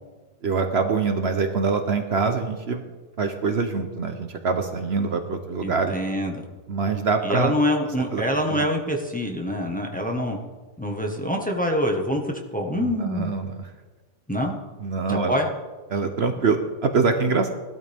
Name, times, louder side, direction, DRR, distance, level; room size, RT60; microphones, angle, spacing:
voice 1, 0.4-2.8 3.2-5.9 6.7-7.5 8.1-8.2 8.5-8.6 12.8-13.7 14.8-15.4 15.9-17.5, right 4 dB, 55° right, 6 dB, 1.1 m, -24 dB
voice 2, 5.6-6.4 7.2-10.4 10.8-13.3 14.3-14.6 15.1-15.5, equal, 5° left, 1 dB, 1.4 m, -25 dB
18.0 x 12.5 x 3.6 m, 1.3 s
omnidirectional pair, 1.3 m